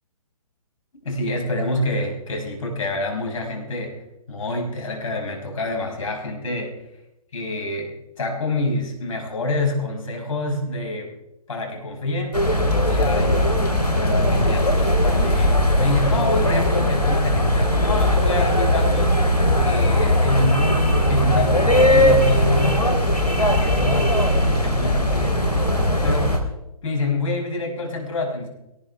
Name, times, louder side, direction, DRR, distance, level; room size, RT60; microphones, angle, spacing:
voice 1, 1.0-3.9 4.3-6.7 7.3-11.1 11.5-12.4 12.9-22.9 23.2-25.5 26.0-26.4 26.8-28.5, left 2 dB, 55° left, 1 dB, 5.6 m, -27 dB
sound 1, 12.3-26.4, left 1 dB, 85° left, 3.4 m, -19 dB
22.5 x 18.5 x 3.4 m, 0.89 s
figure-of-eight pair, 130°, 20 cm